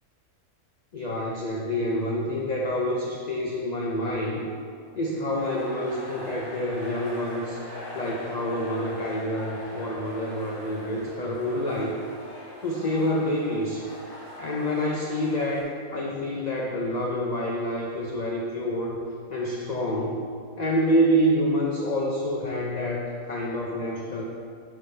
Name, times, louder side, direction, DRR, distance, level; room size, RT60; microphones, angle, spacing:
voice 1, 0.9-4.4 5.0-12.0 12.6-13.9 14.4-19.0 19.3-20.3 20.6-24.2, equal, 40° left, -2 dB, 0.7 m, -27 dB
sound 1, 5.4-15.6, left 1 dB, 80° left, 2.9 m, -41 dB
10.5 x 7.2 x 3.4 m, 2.3 s
omnidirectional pair, 1.6 m